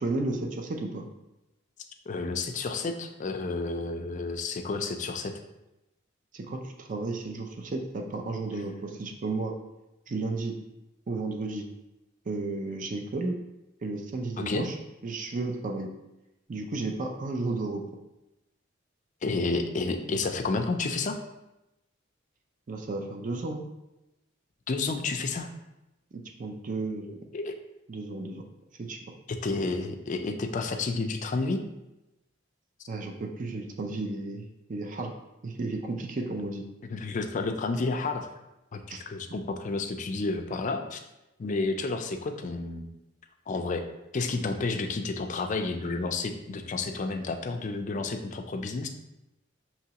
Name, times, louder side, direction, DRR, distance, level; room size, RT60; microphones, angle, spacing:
voice 1, 0.0-1.1 6.3-9.5 10.1-10.6 11.1-11.7 12.3-13.4 13.8-14.7 15.0-15.9 16.5-17.8 22.7-23.6 26.1-27.1 27.9-28.4 28.8-29.0 32.9-35.1 35.4-36.6 38.9-39.0 39.3-39.4, right 3 dB, 40° right, 3 dB, 0.4 m, -33 dB
voice 2, 2.1-5.3 14.4-14.7 19.2-21.2 24.7-25.5 27.3-27.5 29.3-31.6 36.8-38.3 38.7-41.0 41.4-42.9 43.5-43.8 44.1-48.9, left 3 dB, 40° left, 5 dB, 0.4 m, -30 dB
5.7 x 2.9 x 2.9 m, 0.94 s
head